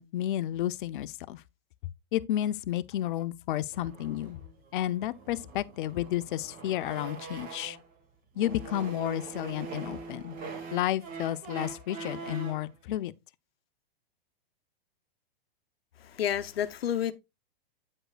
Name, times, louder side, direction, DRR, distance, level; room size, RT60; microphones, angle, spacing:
voice 1, 0.0-1.4 2.1-4.4 4.7-7.8 8.4-10.4 10.7-13.1, left 13 dB, 60° left, 0.7 m, -31 dB
sound 1, 3.7-7.9 8.3-12.7, right 4 dB, 30° right, 2.3 m, -43 dB
voice 2, 16.0-17.1, left 10 dB, 85° left, 1.0 m, -30 dB
9.2 x 7.7 x 2.4 m
hypercardioid pair, 135°, 29 cm